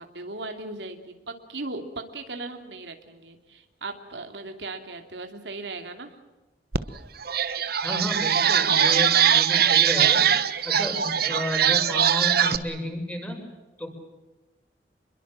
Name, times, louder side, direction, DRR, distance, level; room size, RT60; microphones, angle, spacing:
voice 1, 0.0-6.1, right 2 dB, 85° right, 5 dB, 2.8 m, -37 dB
sound 1, 6.7-6.8 7.2-12.6, right 8 dB, 60° right, 1.2 m, -21 dB
voice 2, 7.8-10.3 10.6-13.4 13.8-13.9, equal, 10° left, 2 dB, 6.2 m, -32 dB
27.5 x 22.0 x 7.5 m, 1.1 s
head